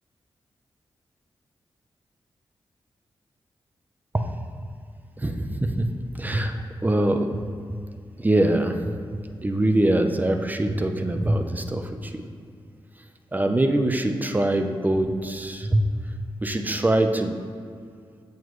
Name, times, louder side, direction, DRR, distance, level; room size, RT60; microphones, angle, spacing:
voice 1, 5.2-5.8 6.2-6.5 6.8-7.3 8.2-8.7 9.4-12.3 13.3-16.1 16.4-17.4, right 1 dB, 20° right, 6 dB, 0.6 m, -23 dB
7.7 x 7.1 x 3.2 m, 2.2 s
cardioid pair, 80°, 9 cm